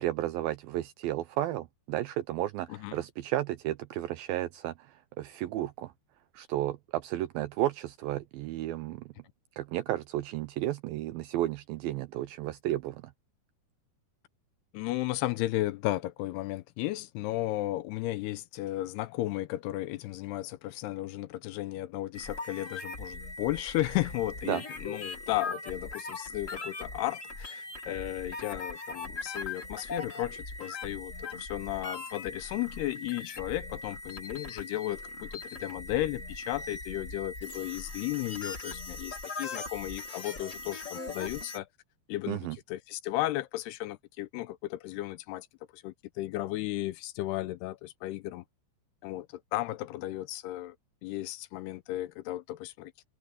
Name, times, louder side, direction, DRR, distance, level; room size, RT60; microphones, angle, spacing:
voice 1, 0.0-5.9 6.3-9.1 9.6-13.1 24.5-24.6 42.3-42.6, right 14 dB, 80° right, 2.1 m, -33 dB
voice 2, 14.7-41.7 42.1-45.5 45.7-48.4 49.0-50.8 51.0-52.9, left 16 dB, 85° left, 2.6 m, -34 dB
sound 1, 22.1-41.6, left 3 dB, 30° left, 1.6 m, -40 dB
omnidirectional pair, 4.9 m